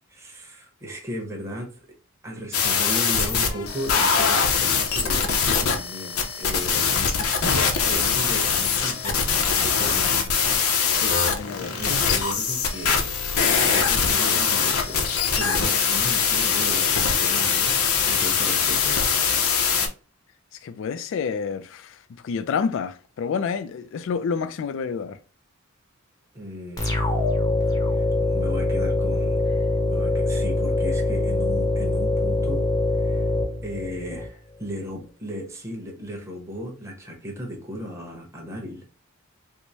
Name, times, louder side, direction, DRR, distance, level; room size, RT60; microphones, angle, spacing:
voice 1, 0.1-1.8 2.2-10.3 11.2-13.0 13.4-15.0 15.3-17.8 18.1-19.0 26.3-27.0 27.9-29.4 29.9-32.7 33.0-33.3 33.6-38.9, equal, 15° right, 0.9 m, -36 dB
sound 1, 2.5-19.9, left 6 dB, 80° left, 0.7 m, -22 dB
voice 2, 10.8-11.7 20.6-22.0 22.2-25.2, left 6 dB, 60° left, 0.3 m, -29 dB
sound 2, 26.8-34.3, left 2 dB, 15° left, 0.7 m, -23 dB
4.6 x 2.1 x 2.6 m
head